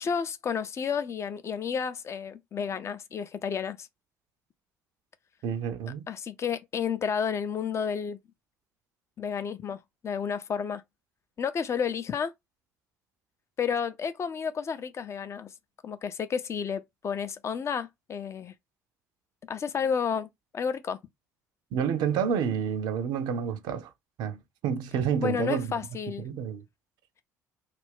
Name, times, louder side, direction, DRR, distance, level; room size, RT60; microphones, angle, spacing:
voice 1, 0.0-3.9 6.1-8.2 9.2-10.8 11.4-12.3 13.6-15.5 15.8-18.5 19.5-20.3 20.5-21.0 25.2-26.3, left 7 dB, 35° left, 0.5 m, -31 dB
voice 2, 5.4-6.1 21.7-23.9 24.2-25.7 26.2-26.6, right 7 dB, 55° right, 0.5 m, -29 dB
2.4 x 2.2 x 3.4 m
figure-of-eight pair, 50°, 9 cm